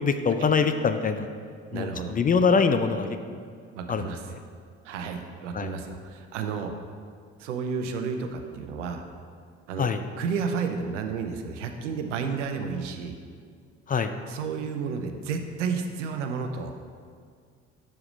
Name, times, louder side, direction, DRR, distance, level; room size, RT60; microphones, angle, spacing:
voice 1, 0.0-1.3 1.7-3.4 3.9-4.1 4.3-4.4 5.5-5.7 9.8-10.0 13.9-14.1, left 5 dB, 25° left, 8 dB, 0.4 m, -24 dB
voice 2, 1.7-2.1 3.7-4.2 4.8-6.7 7.4-9.0 9.7-9.9 10.2-13.1 14.3-16.8, right 5 dB, 85° right, 6 dB, 0.7 m, -31 dB
6.4 x 4.8 x 5.1 m, 2.1 s
hypercardioid pair, 55°, 36 cm